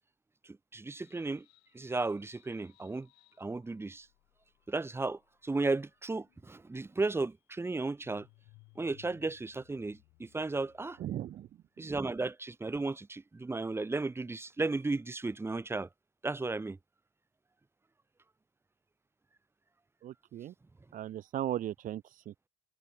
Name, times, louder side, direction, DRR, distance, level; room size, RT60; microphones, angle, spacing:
voice 1, 0.7-1.5 1.7-3.1 3.4-4.1 4.7-8.3 8.8-11.0 11.8-15.9 16.2-16.8, right 3 dB, 15° right, 1.6 m, -34 dB
sound 1, 1.0-11.6, left 26 dB, 80° left, 7.9 m, -65 dB
voice 2, 11.0-11.5 20.0-20.5 20.9-22.3, right 12 dB, 50° right, 0.9 m, -37 dB
cardioid pair, 105°, 18 cm